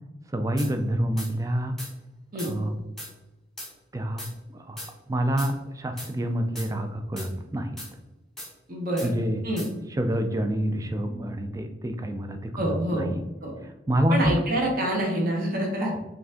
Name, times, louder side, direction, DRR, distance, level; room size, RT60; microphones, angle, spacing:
voice 1, 0.3-1.7 2.4-2.8 3.9-4.2 4.5-4.8 5.1-7.7 9.0-9.4 10.0-13.1 13.6-14.3 15.8-16.0, right 1 dB, 15° right, 6 dB, 0.3 m, -27 dB
sound 1, 0.6-0.7 1.2-1.3 1.8-1.9 2.4-2.5 3.0-3.1 3.6-3.7 4.2-4.3 4.8-4.9 5.4-5.5 6.0-6.1 6.6-6.7 7.2-7.3 7.8-7.9 8.4-8.5 9.0-9.1 9.6-9.7, left 1 dB, ahead, 0.7 m, -38 dB
voice 2, 8.7-9.1 9.4-9.7 12.6-13.1 13.4-13.5 14.1-15.9, right 1 dB, 45° right, -1 dB, 1.0 m, -26 dB
4.7 x 2.5 x 3.7 m, 1.0 s
head